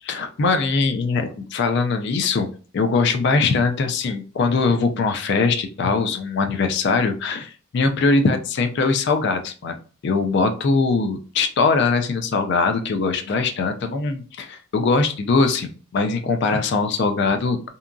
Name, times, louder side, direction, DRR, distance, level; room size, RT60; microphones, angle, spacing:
voice 1, 0.0-9.8 10.0-17.7, left 4 dB, 55° left, 7 dB, 0.3 m, -21 dB
2.7 x 2.3 x 2.5 m, 0.38 s
head